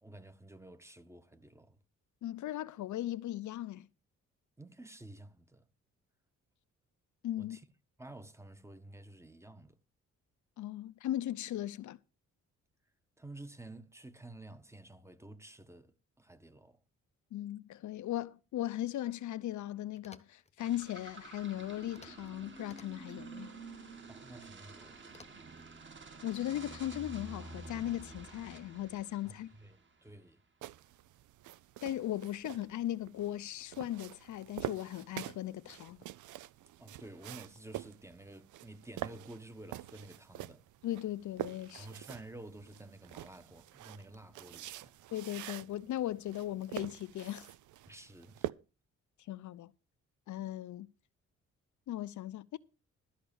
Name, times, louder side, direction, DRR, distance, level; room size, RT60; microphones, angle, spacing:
voice 1, 0.0-1.8 4.6-5.7 7.4-7.7 8.0-9.8 13.2-16.8 24.1-25.1 29.2-30.4 36.8-40.6 41.8-45.0 47.9-48.5, right 2 dB, 10° right, 1.1 m, -51 dB
voice 2, 2.2-3.9 7.2-7.6 10.6-12.0 17.3-23.6 26.2-29.5 31.8-36.0 40.8-41.9 45.1-47.5 49.3-49.7 50.3-50.9 51.9-52.6, left 13 dB, 75° left, 0.7 m, -38 dB
sound 1, 19.9-20.5 21.9-22.3 22.6-23.2 25.1-25.7, left 4 dB, 20° left, 1.0 m, -58 dB
sound 2, 20.6-30.1, right 3 dB, 40° right, 2.4 m, -50 dB
sound 3, 30.6-48.5, right 14 dB, 80° right, 0.6 m, -46 dB
13.0 x 5.9 x 7.0 m
cardioid pair, 100°, 30 cm